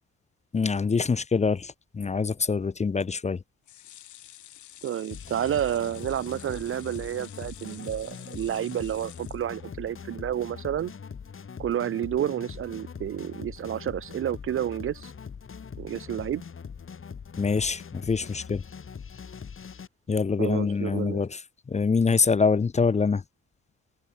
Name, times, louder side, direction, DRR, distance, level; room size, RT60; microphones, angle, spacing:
voice 1, 0.5-3.4 17.4-18.6 20.1-21.4 21.7-23.2, left 5 dB, 20° left, 0.7 m, -25 dB
sound 1, 3.7-10.0 10.4-10.5 10.8-10.9, left 13 dB, 75° left, 2.1 m, -49 dB
voice 2, 4.8-10.9 11.6-15.1 15.8-16.4 20.4-21.2, right 10 dB, 45° right, 0.5 m, -30 dB
sound 2, 5.1-19.9, left 6 dB, 45° left, 6.8 m, -42 dB
cardioid pair, 90°, 30 cm